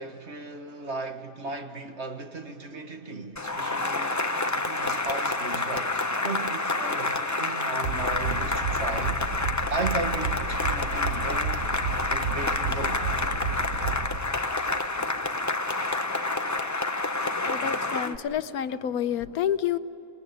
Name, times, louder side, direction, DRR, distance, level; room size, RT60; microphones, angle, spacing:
voice 1, 0.0-4.2 4.4-9.2 9.7-11.7 12.1-13.0, right 3 dB, 50° right, 1.8 m, -36 dB
Cheering / Applause, 3.4-18.2, left 2 dB, 20° left, 0.5 m, -28 dB
sound 1, 7.8-14.2, right 5 dB, 80° right, 3.5 m, -31 dB
voice 2, 17.4-19.8, left 9 dB, 80° left, 1.3 m, -28 dB
27.5 x 21.0 x 9.5 m
omnidirectional pair, 1.5 m